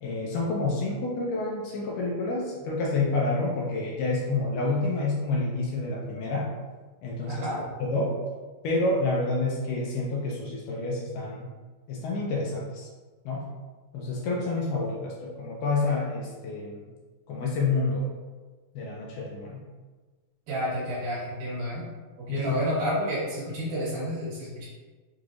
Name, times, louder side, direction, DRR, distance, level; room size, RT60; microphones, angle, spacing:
voice 1, 0.0-6.5 7.0-7.5 7.8-8.2 8.6-11.5 11.9-12.9 13.3-13.4 13.9-16.9 17.3-18.1 18.7-19.6 22.3-22.6, left 3 dB, 75° left, -3 dB, 2.1 m, -28 dB
voice 2, 7.3-7.6 20.5-21.9 22.2-24.7, equal, 65° right, -7 dB, 2.6 m, -30 dB
6.3 x 2.9 x 2.5 m, 1.3 s
omnidirectional pair, 4.2 m